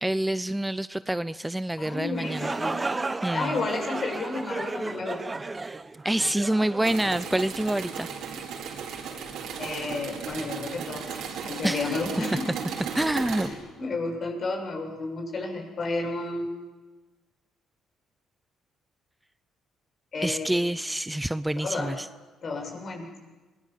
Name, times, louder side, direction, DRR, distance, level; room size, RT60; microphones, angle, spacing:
voice 1, 0.0-2.5 3.2-3.6 6.0-8.1 11.6-12.0 12.9-13.5 20.2-22.1, right 1 dB, 10° right, 15 dB, 0.7 m, -27 dB
voice 2, 1.8-2.8 3.3-5.2 9.6-11.1 11.4-12.5 13.4-16.5 20.1-20.5 21.6-21.9 22.4-23.1, left 3 dB, 50° left, 2 dB, 7.4 m, -32 dB
sound 1, 2.0-7.7, right 3 dB, 25° right, 1.1 m, -33 dB
sound 2, 6.8-13.5, right 6 dB, 70° right, 4.5 m, -35 dB
27.0 x 19.5 x 7.6 m, 1.2 s
hypercardioid pair, 55°, 0 cm